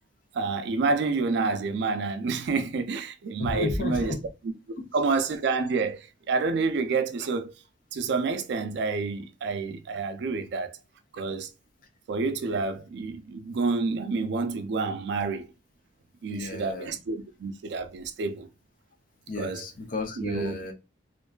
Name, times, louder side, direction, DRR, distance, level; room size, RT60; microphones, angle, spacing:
voice 1, 0.3-4.1 4.9-7.5 7.9-10.8 11.1-11.5 12.1-15.5 16.2-18.5 19.4-19.7 20.2-20.5, right 4 dB, 65° right, 0.4 m, -28 dB
voice 2, 3.4-4.2 16.3-17.0 19.3-20.7, left 2 dB, 50° left, 0.5 m, -33 dB
2.5 x 2.2 x 2.2 m
head